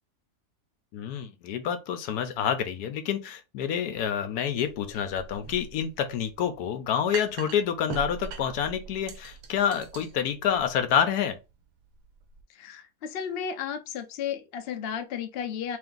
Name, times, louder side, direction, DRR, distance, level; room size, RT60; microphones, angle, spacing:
voice 1, 0.9-11.4, left 8 dB, 75° left, 1.1 m, -28 dB
sound 1, 4.6-12.4, right 7 dB, 90° right, 1.2 m, -43 dB
voice 2, 12.5-15.8, left 8 dB, 55° left, 0.7 m, -34 dB
3.4 x 3.1 x 3.8 m
omnidirectional pair, 1.7 m